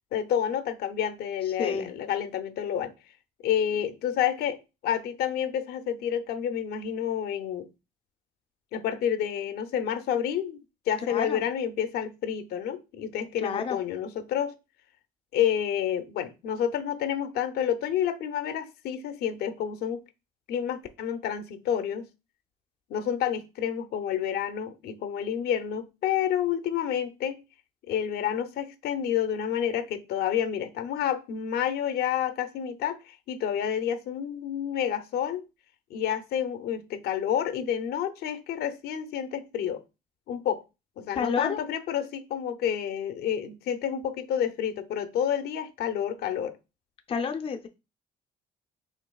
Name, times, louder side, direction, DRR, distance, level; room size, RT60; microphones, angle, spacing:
voice 1, 0.1-2.9 3.4-7.7 8.7-10.6 10.9-14.5 15.3-20.0 20.5-22.0 22.9-27.4 27.9-35.4 35.9-39.8 40.3-40.6 41.0-46.6, left 9 dB, 70° left, 0.6 m, -29 dB
voice 2, 1.6-1.9 11.1-11.4 13.4-13.8 41.2-41.6 47.1-47.7, left 6 dB, 35° left, 0.5 m, -29 dB
5.2 x 3.1 x 2.3 m
cardioid pair, 110°, 17 cm